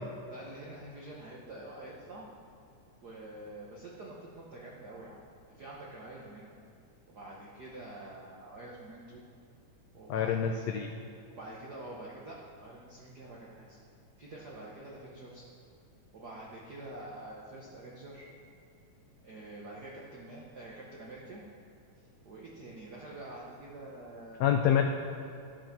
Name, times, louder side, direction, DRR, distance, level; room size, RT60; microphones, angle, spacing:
voice 1, 0.3-2.3 3.0-5.2 5.5-6.5 7.1-9.2 9.9-10.6 11.3-13.8 14.2-15.4 16.1-18.3 19.2-21.4 22.2-24.8, right 2 dB, 70° right, -4 dB, 0.9 m, -46 dB
voice 2, 10.1-10.9 24.4-24.8, left 9 dB, 85° left, 4 dB, 1.4 m, -26 dB
13.5 x 7.4 x 5.8 m, 2.6 s
omnidirectional pair, 3.7 m